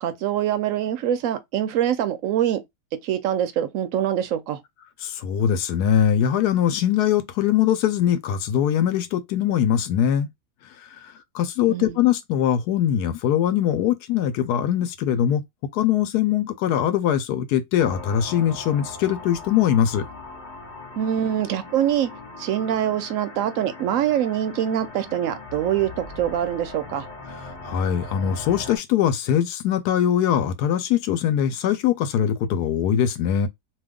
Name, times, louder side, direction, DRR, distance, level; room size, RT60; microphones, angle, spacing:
voice 1, 0.0-2.6 3.0-4.6 11.7-12.0 21.0-22.1 22.4-27.1, right 10 dB, 70° right, 0.8 m, -24 dB
voice 2, 5.0-10.3 11.0-15.4 15.7-20.0 27.6-33.5, left 10 dB, 75° left, 1.1 m, -22 dB
sound 1, 17.8-28.8, left 2 dB, 30° left, 1.1 m, -39 dB
2.7 x 2.3 x 3.4 m
omnidirectional pair, 1.7 m